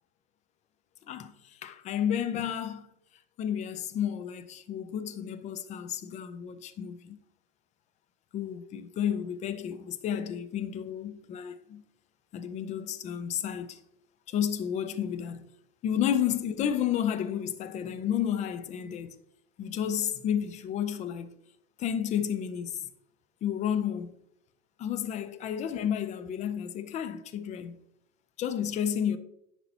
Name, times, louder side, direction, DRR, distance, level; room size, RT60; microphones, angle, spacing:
voice 1, 1.1-2.9 3.4-7.2 8.3-11.8 12.3-13.8 14.3-15.5 15.8-19.2 19.6-21.4 21.8-22.9 23.4-24.1 24.8-27.8 28.4-29.2, left 9 dB, 20° left, 0.3 m, -31 dB
10.0 x 5.5 x 2.8 m
hypercardioid pair, 105°, 43 cm